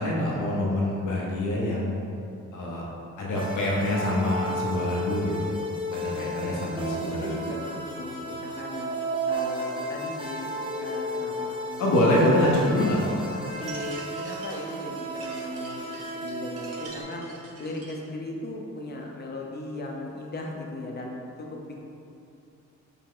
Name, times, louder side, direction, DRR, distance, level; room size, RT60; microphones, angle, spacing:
voice 1, 0.0-2.0 2.5-2.8 3.2-5.6 5.9-7.5 11.8-13.3, left 1 dB, 85° left, -4 dB, 0.7 m, -25 dB
sound 1, 3.3-17.0, right 1 dB, 15° right, 0.7 m, -33 dB
voice 2, 6.1-9.0 9.2-12.5 13.3-15.8 16.1-17.2 17.6-21.8, left 2 dB, 35° left, 0 dB, 0.7 m, -37 dB
sound 2, 13.5-18.1, right 3 dB, 50° right, 0.8 m, -46 dB
5.2 x 2.1 x 3.7 m, 2.6 s
cardioid pair, 90°, 30 cm